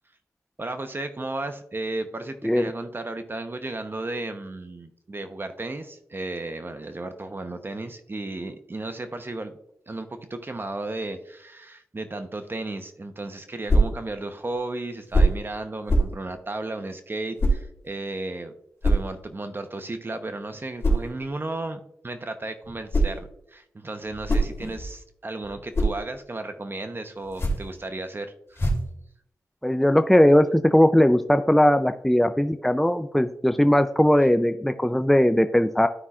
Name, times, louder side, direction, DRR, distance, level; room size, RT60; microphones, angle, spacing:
voice 1, 0.6-9.5 9.9-18.5 18.8-28.7, right 2 dB, 35° right, 8 dB, 0.9 m, -34 dB
sound 1, 13.7-14.0 15.1-15.4 15.9-16.2 17.4-17.6 18.8-19.1 20.8-21.1 22.6-23.2 24.0-25.0 25.4-26.0 27.2-27.7 28.6-28.9, right 1 dB, 40° left, 2.9 m, -23 dB
voice 2, 29.6-35.9, left 1 dB, 5° left, 9 dB, 0.5 m, -19 dB
13.0 x 5.5 x 2.4 m, 0.74 s
cardioid pair, 45°, 6 cm